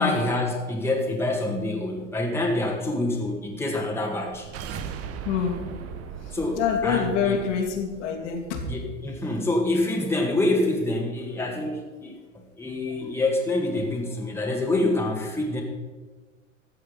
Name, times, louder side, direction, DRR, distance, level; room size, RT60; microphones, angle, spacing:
voice 1, 0.0-4.5 6.3-7.4 8.7-12.2 12.6-15.6, left 2 dB, 5° left, 0 dB, 1.9 m, -26 dB
sound 1, 4.1-9.2, right 7 dB, 35° right, 1.0 m, -39 dB
voice 2, 5.2-5.6 6.2-8.6 13.8-13.9, left 7 dB, 65° left, 0 dB, 2.6 m, -26 dB
14.0 x 7.8 x 5.2 m, 1.3 s
hypercardioid pair, 90°, 39 cm